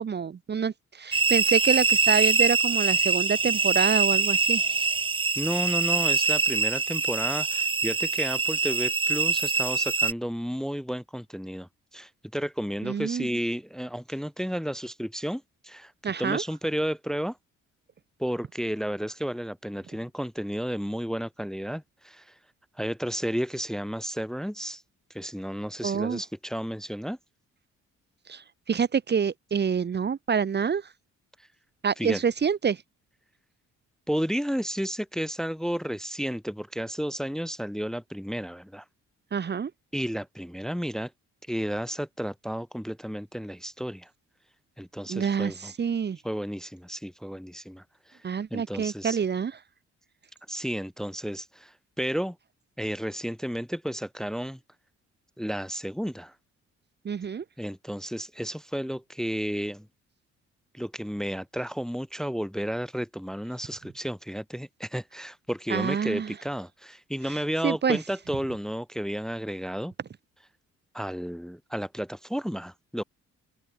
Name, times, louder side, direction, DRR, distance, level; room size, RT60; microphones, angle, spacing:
voice 1, 0.0-4.6 12.8-13.3 16.0-16.4 25.8-26.2 28.3-28.4 28.7-30.8 31.8-32.8 39.3-39.7 45.1-46.2 48.2-49.5 57.0-57.4 65.7-66.3 67.6-68.0, right 6 dB, 35° right, 0.9 m, -27 dB
sound 1, 1.1-10.1, right 4 dB, 20° right, 0.5 m, -24 dB
voice 2, 5.4-15.9 16.2-17.4 18.2-22.3 22.8-24.8 25.1-27.2 32.0-32.2 34.1-38.8 39.9-41.1 41.5-44.1 44.8-45.7 46.2-47.8 48.1-48.2 48.5-49.2 50.5-52.4 52.8-54.6 55.4-56.3 57.6-59.9 60.7-69.9 70.9-73.0, equal, ahead, 0.9 m, -32 dB
open air
cardioid pair, 90°, 30 cm